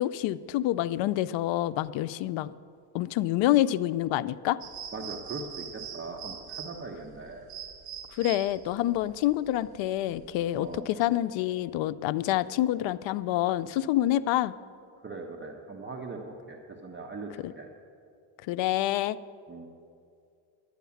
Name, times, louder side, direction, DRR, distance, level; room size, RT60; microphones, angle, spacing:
voice 1, 0.0-2.5 2.9-4.6 8.2-14.5 17.4-17.5 18.5-19.2, left 14 dB, 65° left, 15 dB, 0.5 m, -27 dB
sound 1, 4.6-10.8, right 8 dB, 55° right, 1.4 m, -43 dB
voice 2, 4.9-7.5 10.6-10.9 15.0-17.7 19.5-19.7, right 3 dB, 25° right, 1 dB, 1.0 m, -40 dB
10.5 x 10.0 x 7.1 m, 2.4 s
cardioid pair, 120°, 50 cm